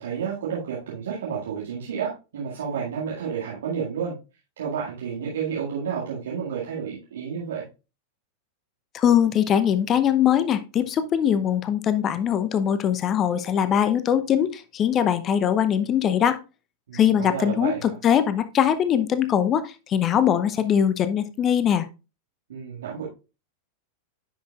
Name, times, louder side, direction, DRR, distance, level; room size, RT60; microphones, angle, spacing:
voice 1, 0.0-4.1 4.6-7.6 16.9-18.0 22.5-23.1, right 7 dB, 65° right, -6 dB, 2.1 m, -31 dB
voice 2, 8.9-16.4 16.9-21.9, left 9 dB, 30° left, 12 dB, 0.6 m, -22 dB
9.4 x 6.0 x 2.4 m, 0.29 s
figure-of-eight pair, 90°, 0 cm